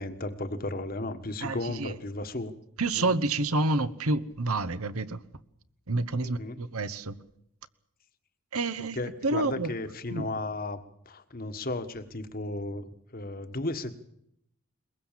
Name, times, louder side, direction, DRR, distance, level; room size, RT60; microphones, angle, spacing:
voice 1, 0.0-2.5 3.0-3.1 6.2-6.6 8.9-14.0, left 2 dB, 40° left, 1.5 m, -35 dB
voice 2, 1.4-2.0 2.8-5.2 5.9-7.2 8.5-9.0 9.2-9.7 10.1-10.3, right 2 dB, 80° right, 1.1 m, -28 dB
22.0 x 21.5 x 7.4 m
head